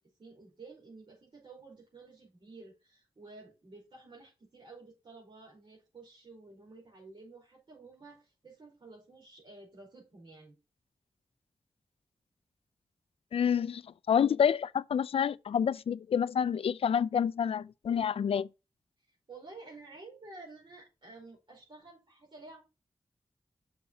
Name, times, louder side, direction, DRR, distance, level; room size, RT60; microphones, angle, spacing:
voice 1, 0.2-10.5 19.0-22.6, right 3 dB, 55° right, 4.9 m, -52 dB
voice 2, 13.3-13.8 14.1-18.5, left 8 dB, 80° left, 0.4 m, -28 dB
7.0 x 6.0 x 4.1 m
wide cardioid pair, 80°, 10 cm